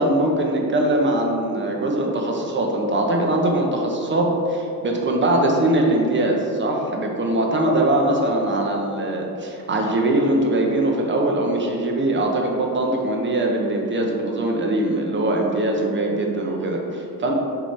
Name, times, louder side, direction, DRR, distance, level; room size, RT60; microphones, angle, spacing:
voice 1, 0.0-17.4, right 1 dB, 30° right, 0 dB, 0.8 m, -21 dB
5.8 x 3.4 x 5.7 m, 2.6 s
wide cardioid pair, 160°, 36 cm